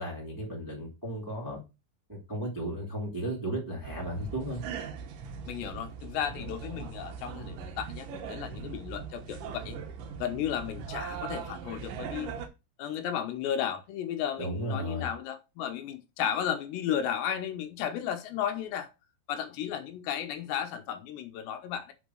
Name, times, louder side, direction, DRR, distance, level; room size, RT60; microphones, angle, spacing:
voice 1, 0.0-1.6 2.1-4.6 14.4-15.1, right 1 dB, 20° right, 0.5 m, -34 dB
sound 1, 3.8-12.5, right 6 dB, 80° right, 1.9 m, -40 dB
voice 2, 5.5-9.8 10.2-12.4 12.8-18.9 19.3-21.9, left 9 dB, 80° left, 2.7 m, -34 dB
6.1 x 4.2 x 6.2 m
omnidirectional pair, 5.3 m